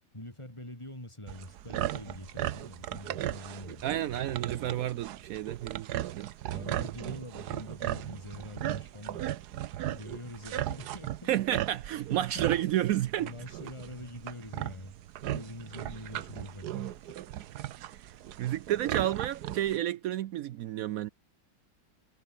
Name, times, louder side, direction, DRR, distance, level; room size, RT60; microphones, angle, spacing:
voice 1, 0.1-4.8 6.5-9.2 9.8-11.3 12.2-12.5 13.2-14.9 15.3-17.2 18.3-18.5, left 1 dB, 15° left, 4.7 m, -45 dB
sound 1, 1.3-19.8, right 12 dB, 65° right, 1.2 m, -37 dB
voice 2, 3.8-6.3 11.3-13.3 17.9-18.0 18.4-21.1, right 12 dB, 85° right, 0.7 m, -31 dB
omnidirectional pair, 2.1 m